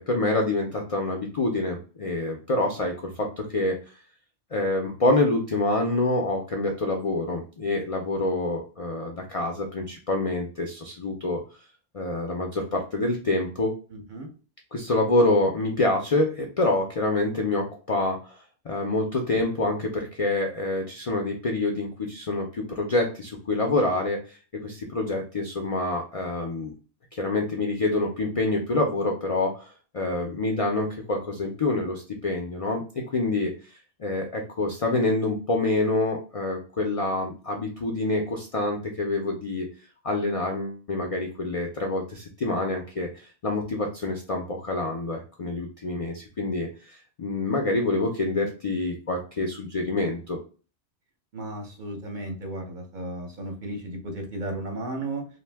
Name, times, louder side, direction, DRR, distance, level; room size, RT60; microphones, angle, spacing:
voice 1, 0.0-3.8 4.5-11.4 11.9-13.7 14.7-18.4 18.6-24.4 24.6-26.7 27.1-39.7 40.0-50.4, left 2 dB, 55° left, 1 dB, 0.4 m, -27 dB
voice 2, 13.9-14.3 19.6-19.7 51.3-55.3, right 2 dB, 50° right, 2 dB, 0.7 m, -34 dB
2.6 x 2.1 x 3.3 m, 0.36 s
omnidirectional pair, 1.1 m